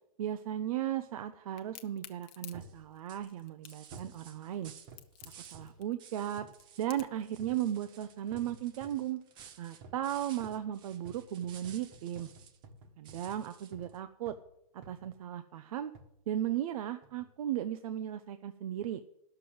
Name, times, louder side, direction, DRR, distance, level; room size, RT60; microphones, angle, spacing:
voice 1, 0.2-4.7 5.5-6.5 6.8-9.2 9.6-12.3 13.0-14.4 14.7-15.9 16.3-19.0, right 11 dB, 70° right, 10 dB, 0.7 m, -36 dB
Crack, 1.6-7.3, left 14 dB, 30° left, 0.7 m, -52 dB
sound 1, 2.5-2.9 3.9-4.2 4.9-5.8 6.4-6.6 7.4-7.7 8.3-9.1 9.8-10.1 10.4-14.0 14.3-14.5 14.8-15.2 15.9-16.2 17.0-17.3 17.9-18.0, right 3 dB, 45° right, 1.4 m, -53 dB
sound 2, 2.6-2.8 3.1-5.7 6.0-6.9 7.2-12.6 13.0-14.0, right 8 dB, 25° right, 0.7 m, -55 dB
11.0 x 6.8 x 7.8 m, 0.80 s
supercardioid pair, 160°, 19 cm